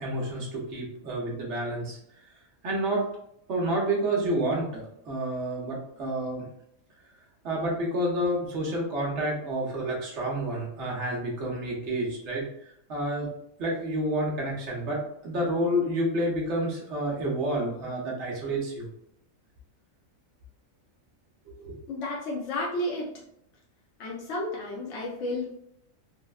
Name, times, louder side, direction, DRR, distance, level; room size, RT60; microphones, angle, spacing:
voice 1, 0.0-2.0 2.6-3.1 3.5-6.5 7.4-12.5 12.9-13.3 13.6-18.9 21.5-21.8, right 1 dB, 60° right, -2 dB, 1.0 m, -29 dB
voice 2, 21.9-23.1 24.0-25.4, left 1 dB, 65° left, -4 dB, 0.9 m, -32 dB
3.3 x 2.1 x 2.3 m, 0.73 s
omnidirectional pair, 1.4 m